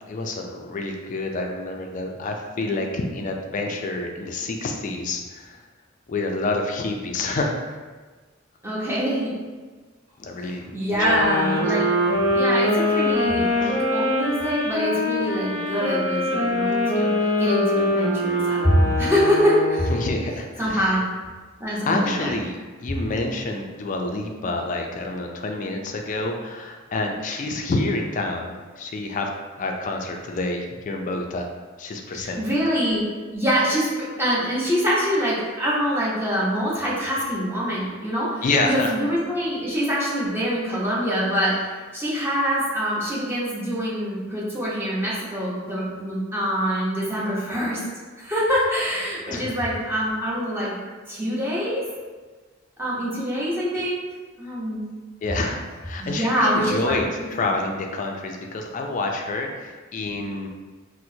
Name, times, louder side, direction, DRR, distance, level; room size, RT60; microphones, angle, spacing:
voice 1, 0.1-5.6 6.1-7.8 10.2-11.2 13.6-13.9 19.9-21.0 21.7-29.3 29.6-31.5 31.8-32.6 38.4-38.9 49.3-49.5 55.2-60.5, left 2 dB, 40° left, 2 dB, 0.3 m, -28 dB
voice 2, 8.6-9.3 10.7-11.9 12.2-19.9 20.6-21.0 21.6-22.3 32.1-33.0 33.3-41.7 41.9-47.8 48.2-50.7 51.1-51.8 52.8-54.0 54.4-54.8 56.0-57.5, equal, 10° right, -7 dB, 0.8 m, -24 dB
sound 1, 10.9-20.2, left 1 dB, 70° right, 0.8 m, -23 dB
4.3 x 2.1 x 2.7 m, 1.4 s
head